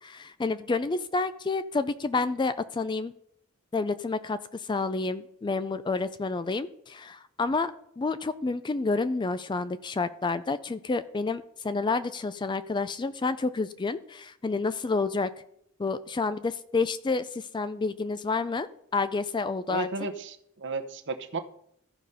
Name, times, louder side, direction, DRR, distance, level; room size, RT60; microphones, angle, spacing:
voice 1, 0.0-3.1 3.7-15.3 15.8-19.9, left 3 dB, 20° left, 13 dB, 0.3 m, -29 dB
voice 2, 19.7-21.4, right 3 dB, 55° right, 8 dB, 0.9 m, -34 dB
14.0 x 5.0 x 5.5 m, 0.72 s
head